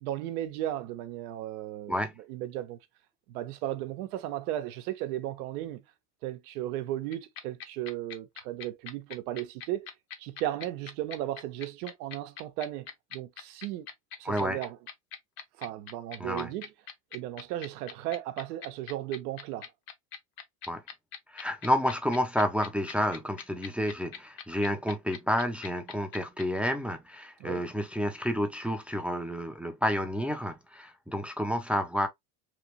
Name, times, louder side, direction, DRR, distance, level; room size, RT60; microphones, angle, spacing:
voice 1, 0.0-2.8 3.3-5.8 6.2-9.9 10.2-13.9 14.2-14.8 15.6-16.7 17.1-19.7 27.4-27.6, right 13 dB, 80° right, 0.8 m, -35 dB
sound 1, 7.1-26.4, left 8 dB, 50° left, 0.9 m, -41 dB
voice 2, 14.2-14.6 16.2-16.5 20.7-20.8 21.3-32.1, equal, 5° right, 0.5 m, -30 dB
3.3 x 2.5 x 3.0 m
supercardioid pair, 95°, 44 cm